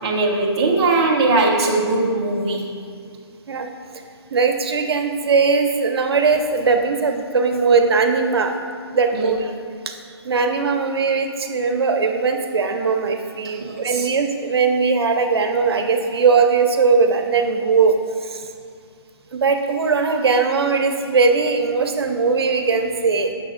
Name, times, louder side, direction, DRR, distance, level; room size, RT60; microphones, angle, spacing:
voice 1, 0.0-2.6 9.1-9.3 13.6-14.1, right 3 dB, 10° right, -4 dB, 0.3 m, -20 dB
voice 2, 4.3-8.6 8.9-9.5 10.2-17.9 18.2-18.5 19.3-23.3, right 4 dB, 65° right, 5 dB, 0.7 m, -19 dB
7.5 x 6.2 x 2.5 m, 2.3 s
hypercardioid pair, 160°, 14 cm